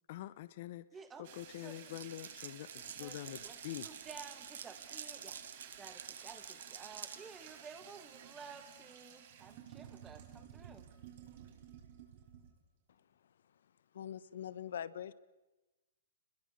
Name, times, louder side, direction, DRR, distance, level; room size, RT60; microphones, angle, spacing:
voice 1, 0.1-0.8 1.2-3.9, left 14 dB, 45° left, 0.9 m, -45 dB
voice 2, 0.9-1.8 3.0-5.4 5.7-10.9, right 5 dB, 10° right, 2.2 m, -53 dB
sound 1, 1.2-12.6, right 9 dB, 50° right, 5.0 m, -54 dB
Glass, 1.9-7.2, right 7 dB, 90° right, 2.0 m, -48 dB
voice 3, 12.9-15.1, left 9 dB, 70° left, 1.3 m, -45 dB
30.0 x 21.5 x 6.7 m
hypercardioid pair, 160°, 0 cm